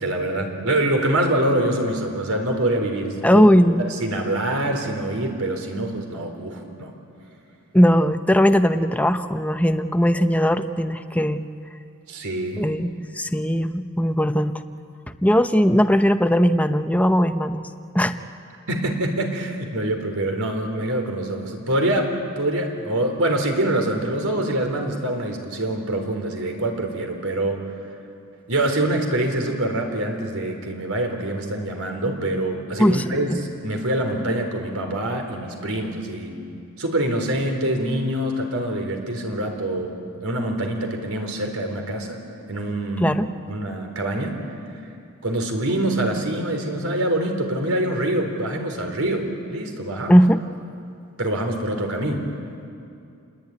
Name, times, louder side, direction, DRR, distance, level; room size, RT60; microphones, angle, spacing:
voice 1, 0.0-3.5 4.0-6.9 12.1-12.6 18.7-27.7 28.5-33.3 33.6-36.4 36.8-42.2 42.5-43.2 43.5-44.5 45.2-50.2 51.2-52.3, right 1 dB, 70° right, 3 dB, 4.1 m, -25 dB
voice 2, 3.2-3.8 7.7-11.4 12.6-14.5 15.2-17.7 17.9-18.2 32.8-33.0 33.3-33.4 43.0-43.3 50.1-50.4, equal, 5° left, 9 dB, 0.8 m, -18 dB
28.0 x 21.5 x 9.7 m, 2.6 s
head